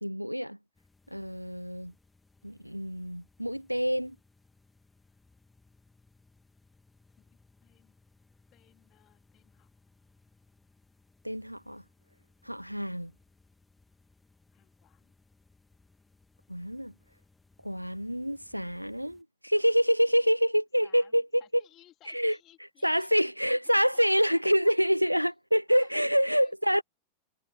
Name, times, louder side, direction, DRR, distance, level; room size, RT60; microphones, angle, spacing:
voice 1, 0.0-0.6 1.1-1.9 2.4-4.2 11.2-11.8 12.5-13.1 16.5-16.9 17.6-21.2 22.1-22.3 22.8-26.8, equal, 90° right, 0.3 m, -26 dB
sound 1, 0.7-19.2, left 3 dB, 10° left, 1.8 m, -65 dB
voice 2, 7.2-8.0 8.5-9.7 14.5-15.1 20.8-23.1 23.8-24.7 25.7-26.0 26.4-26.8, left 14 dB, 35° left, 3.6 m, -60 dB
figure-of-eight pair, 90°, 0 cm